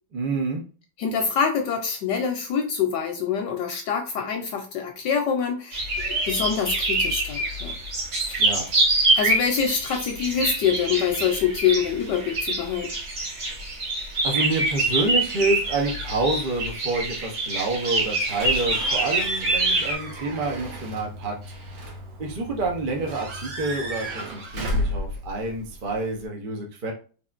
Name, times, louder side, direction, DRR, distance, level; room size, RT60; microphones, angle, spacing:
voice 1, 0.1-0.6 8.4-8.7 14.2-21.3 22.2-26.9, right 2 dB, 45° right, 1 dB, 0.6 m, -28 dB
voice 2, 1.0-7.8 8.2-8.5 9.2-12.9, left 7 dB, 70° left, 4 dB, 1.1 m, -25 dB
sound 1, 5.7-19.9, right 2 dB, 90° right, 2.4 m, -26 dB
Slam / Squeak / Alarm, 18.3-26.2, equal, 70° right, 1.7 m, -32 dB
4.2 x 3.5 x 2.5 m, 0.38 s
omnidirectional pair, 2.2 m